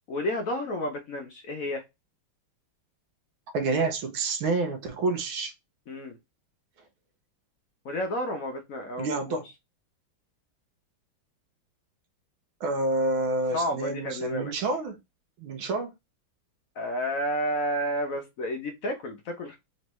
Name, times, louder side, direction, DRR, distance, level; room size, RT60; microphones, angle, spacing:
voice 1, 0.0-1.8 5.9-6.2 7.8-9.4 13.5-14.5 16.8-19.6, equal, 65° left, 0.8 m, -31 dB
voice 2, 3.5-5.5 9.0-9.5 12.6-15.0 15.4-15.9, right 3 dB, 75° right, 1.5 m, -28 dB
4.4 x 3.1 x 3.0 m
omnidirectional pair, 2.3 m